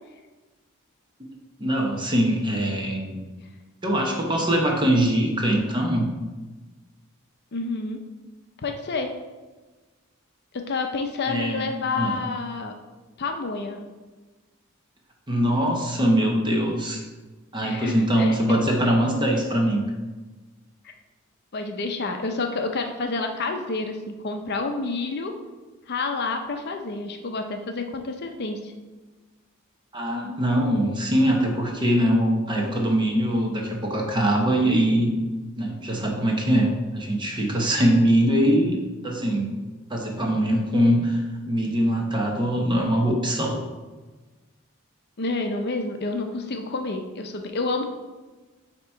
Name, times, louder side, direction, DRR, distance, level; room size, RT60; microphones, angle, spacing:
voice 1, 1.6-3.2 3.8-6.1 11.3-11.7 12.0-12.2 15.3-17.0 17.5-19.8 29.9-35.1 35.6-38.8 39.0-39.5 39.9-43.6, right 1 dB, 20° right, 0 dB, 0.9 m, -22 dB
voice 2, 7.5-8.0 8.6-9.1 10.5-12.7 13.2-13.8 17.6-18.7 20.8-20.9 21.5-25.3 25.9-28.7 45.2-47.9, left 3 dB, 50° left, 4 dB, 0.6 m, -29 dB
8.2 x 2.9 x 4.4 m, 1.3 s
head